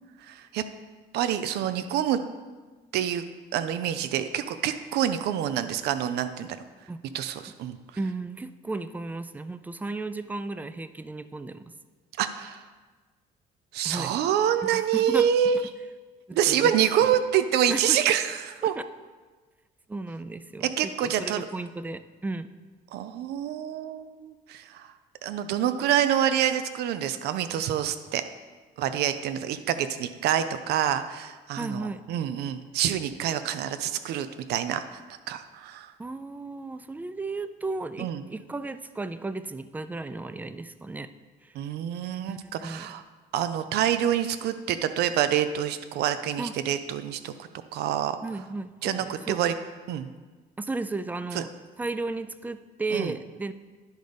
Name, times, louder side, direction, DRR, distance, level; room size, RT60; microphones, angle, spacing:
voice 1, 0.3-0.6 1.1-2.2 2.9-3.2 3.5-6.6 7.1-7.8 12.2-12.6 13.7-15.6 16.3-18.7 20.6-21.5 22.9-24.9 25.2-28.2 28.8-35.0 35.3-35.9 38.0-38.2 41.5-43.0 43.3-48.2 48.8-49.5 49.9-50.1 51.3-51.4 52.9-53.1, right 10 dB, 75° right, 11 dB, 0.5 m, -27 dB
voice 2, 8.0-11.6 13.8-14.1 14.7-15.3 16.3-16.7 17.7-18.0 18.6-18.7 19.9-22.5 31.6-32.0 36.0-41.1 41.4-41.5 42.3-42.9 46.4-46.5 48.2-49.4 50.6-51.5 51.8-53.5, right 3 dB, 10° right, 13 dB, 0.3 m, -34 dB
10.0 x 4.0 x 5.1 m, 1.4 s
cardioid pair, 110°, 17 cm